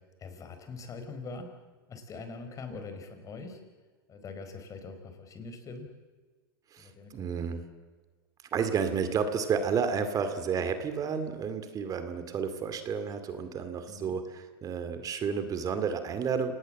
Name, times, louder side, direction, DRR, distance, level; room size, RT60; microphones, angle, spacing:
voice 1, 0.2-1.5 1.9-3.6 4.1-5.9 6.8-7.1 13.9-14.2, left 4 dB, 25° left, 7 dB, 4.7 m, -43 dB
voice 2, 6.7-7.6 8.5-16.5, right 6 dB, 30° right, 9 dB, 2.5 m, -31 dB
28.0 x 19.0 x 7.7 m, 1.4 s
hypercardioid pair, 115°, 12 cm